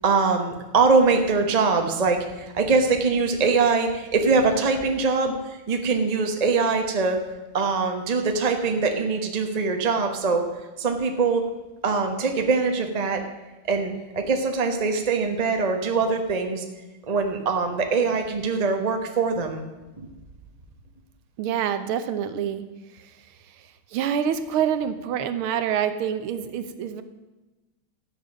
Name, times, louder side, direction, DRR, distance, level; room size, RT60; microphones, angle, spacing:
voice 1, 0.0-7.2 7.5-10.5 10.8-11.4 11.8-13.2 13.6-16.6 17.1-19.6 20.0-20.1, right 4 dB, 30° right, 4 dB, 0.7 m, -23 dB
voice 2, 21.4-22.6 23.9-27.0, right 9 dB, 75° right, 10 dB, 1.7 m, -26 dB
12.5 x 8.6 x 6.4 m, 1.2 s
omnidirectional pair, 2.4 m